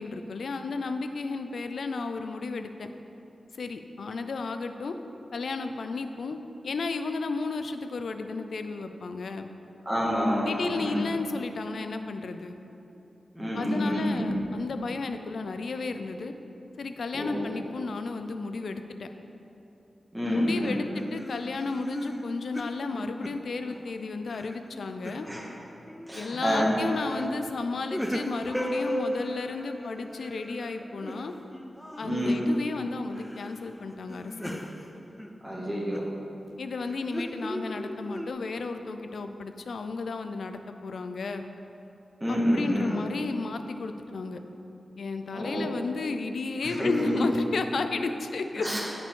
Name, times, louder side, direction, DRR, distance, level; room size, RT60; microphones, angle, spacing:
voice 1, 0.0-2.9 3.5-4.9 5.3-9.5 10.4-12.6 13.6-16.3 16.8-19.1 20.2-25.3 26.2-31.3 32.0-34.7 36.6-41.4 42.3-44.4 45.0-48.7, left 3 dB, 75° left, 8 dB, 0.4 m, -33 dB
voice 2, 9.8-11.0 13.3-14.4 17.1-17.4 20.1-20.8 25.2-25.4 26.1-26.7 32.0-32.4 35.4-36.0 42.2-43.0 45.3-45.7 46.6-47.2 48.6-48.8, equal, 10° right, -6 dB, 1.7 m, -28 dB
sound 1, 20.9-23.9 24.3-25.4 25.9-26.2 26.8-27.3 27.6-32.7 33.1-33.6 33.9-36.1 36.8-38.3, equal, 5° left, 0.4 m, -37 dB
9.9 x 4.9 x 3.7 m, 2.9 s
wide cardioid pair, 100°, 0 cm